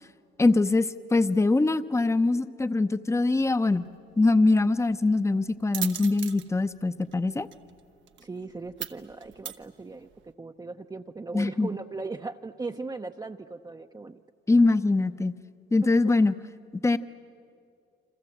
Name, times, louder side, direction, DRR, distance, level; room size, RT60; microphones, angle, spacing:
voice 1, 0.4-3.9 4.2-7.5 11.3-11.7 14.5-15.3 15.7-16.3 16.8-17.0, left 3 dB, 15° left, 12 dB, 0.8 m, -23 dB
sound 1, 3.4-10.3, right 10 dB, 70° right, 1.1 m, -41 dB
voice 2, 8.2-14.2, right 3 dB, 20° right, 5 dB, 0.7 m, -38 dB
28.5 x 26.0 x 7.9 m, 2.5 s
cardioid pair, 90°, 20 cm